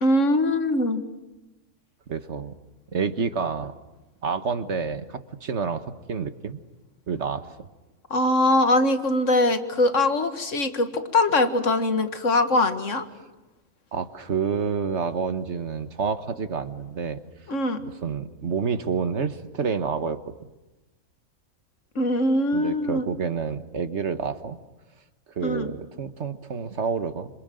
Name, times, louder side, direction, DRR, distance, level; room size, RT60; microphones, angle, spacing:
voice 1, 0.0-1.0 8.1-13.0 17.5-17.8 22.0-23.0 25.4-25.7, left 2 dB, 75° left, 8 dB, 2.2 m, -22 dB
voice 2, 2.1-2.5 2.9-3.7 4.2-6.6 7.1-7.5 13.9-17.2 18.0-20.4 22.5-24.6 25.3-27.4, right 5 dB, 65° right, 11 dB, 1.6 m, -28 dB
27.0 x 26.5 x 7.8 m, 1.0 s
omnidirectional pair, 1.3 m